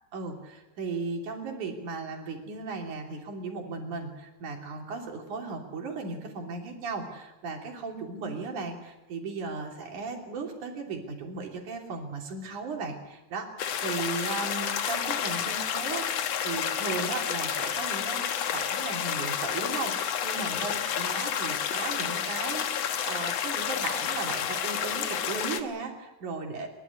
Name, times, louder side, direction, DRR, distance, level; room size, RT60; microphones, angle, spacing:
voice 1, 0.1-26.7, right 4 dB, 80° right, 2 dB, 4.5 m, -36 dB
sound 1, 13.6-25.6, left 8 dB, 60° left, 2.2 m, -30 dB
27.5 x 12.5 x 9.6 m, 1.0 s
omnidirectional pair, 3.5 m